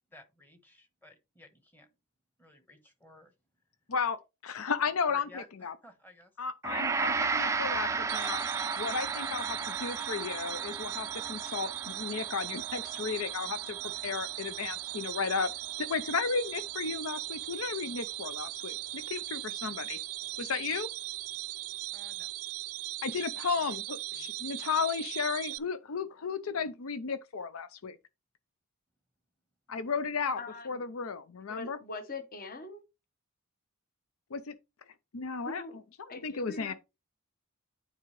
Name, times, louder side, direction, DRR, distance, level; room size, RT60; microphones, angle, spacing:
voice 1, 0.1-1.9 2.4-3.3 5.1-6.3 21.9-22.3 24.1-24.3, left 2 dB, 10° left, 1.1 m, -52 dB
voice 2, 3.9-5.7 6.4-8.4 8.8-13.8 14.0-15.5 15.8-20.0 20.4-20.9 23.0-28.0 29.7-30.4 30.6-31.8 34.3-34.5 35.1-36.7, left 5 dB, 70° left, 0.6 m, -34 dB
Gong, 6.6-15.8, right 4 dB, 15° right, 0.4 m, -35 dB
sound 1, 8.1-25.6, right 18 dB, 75° right, 0.4 m, -38 dB
voice 3, 30.3-30.7 31.5-32.8 35.5-35.8 36.1-36.7, left 3 dB, 40° left, 1.1 m, -42 dB
9.4 x 4.8 x 3.1 m
head